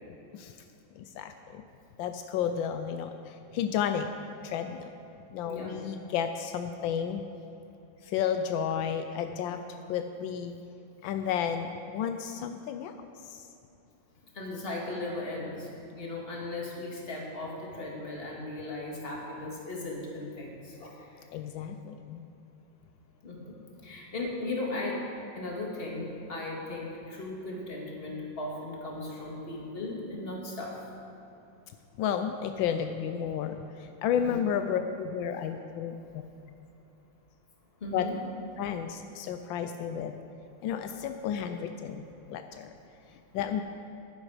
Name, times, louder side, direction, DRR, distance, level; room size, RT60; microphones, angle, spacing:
voice 1, 1.0-1.6 2.0-4.1 4.4-4.9 5.3-7.2 8.0-9.6 9.9-10.6 11.0-12.9 13.2-13.4 21.3-22.3 32.0-36.2 37.9-38.1 38.6-40.1 40.6-42.7 43.3-43.6, left 8 dB, 85° left, 7 dB, 1.3 m, -32 dB
voice 2, 14.3-21.1 23.2-23.5 23.8-25.0 25.4-30.8 34.1-34.4 37.8-38.2, left 2 dB, 30° left, -2 dB, 1.9 m, -37 dB
11.5 x 9.5 x 4.9 m, 2.8 s
omnidirectional pair, 2.1 m